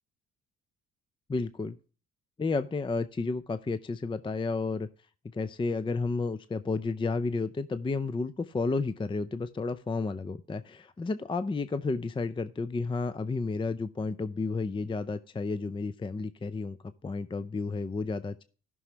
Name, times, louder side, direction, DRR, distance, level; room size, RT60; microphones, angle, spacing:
voice 1, 1.3-1.8 2.4-4.9 5.3-16.8 17.0-18.4, left 3 dB, 15° left, 13 dB, 0.5 m, -31 dB
16.0 x 6.2 x 2.9 m, 0.40 s
cardioid pair, 90°, 30 cm